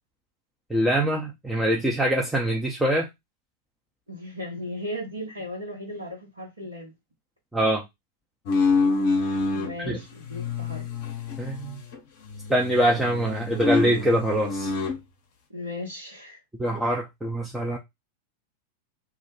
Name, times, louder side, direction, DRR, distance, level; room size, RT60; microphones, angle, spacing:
voice 1, 0.7-3.1 7.5-7.8 9.8-10.0 11.4-11.8 12.5-14.7 16.6-17.8, right 1 dB, 5° right, 0.5 m, -24 dB
voice 2, 4.1-6.9 9.5-10.9 15.5-16.4, left 1 dB, 75° right, 1.0 m, -36 dB
sound 1, 8.5-9.7 10.2-12.0 12.3-15.0, left 4 dB, 50° left, 0.6 m, -27 dB
2.3 x 2.1 x 3.1 m
figure-of-eight pair, 90°, 0 cm